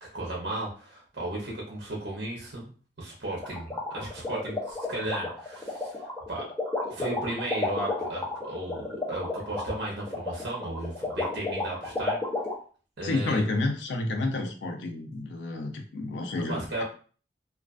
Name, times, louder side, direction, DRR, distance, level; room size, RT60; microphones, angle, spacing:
voice 1, 0.0-2.6 3.0-6.0 6.3-6.4 6.8-12.2 13.0-13.4 16.3-16.8, right 1 dB, 65° right, -2 dB, 0.7 m, -35 dB
sound 1, 3.4-12.5, left 2 dB, 10° left, 0.5 m, -31 dB
voice 2, 13.0-16.8, left 2 dB, 80° left, 4 dB, 0.4 m, -30 dB
2.3 x 2.3 x 2.3 m, 0.40 s
head